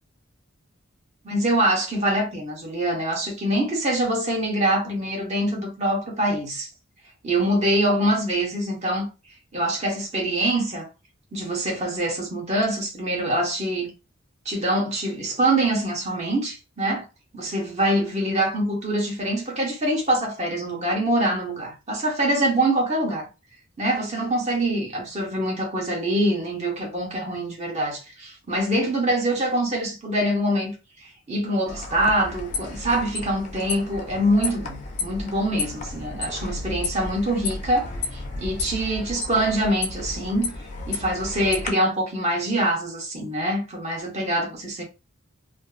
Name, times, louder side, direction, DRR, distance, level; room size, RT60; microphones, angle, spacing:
voice 1, 1.2-6.7 7.2-9.1 9.5-10.9 11.3-13.9 14.4-17.1 17.3-23.3 23.8-30.7 31.3-40.5 40.9-44.8, right 1 dB, 30° right, 0.8 m, -24 dB
sound 1, 31.7-41.7, left 3 dB, 35° left, 0.4 m, -32 dB
2.5 x 2.3 x 2.4 m
head